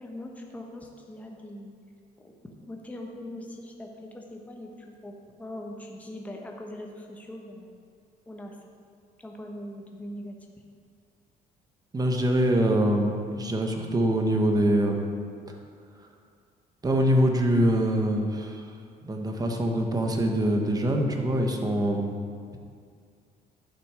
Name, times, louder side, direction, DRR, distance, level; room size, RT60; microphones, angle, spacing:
voice 1, 0.0-1.7 2.2-2.3 2.7-4.7 5.0-5.1 5.4-7.8 8.3-8.6 9.2-10.4, left 1 dB, 10° left, 0 dB, 1.0 m, -41 dB
voice 2, 11.9-15.0 16.8-18.6 19.0-22.1, right 1 dB, 20° right, 2 dB, 1.3 m, -24 dB
12.0 x 5.9 x 5.0 m, 2.2 s
cardioid pair, 110°, 17 cm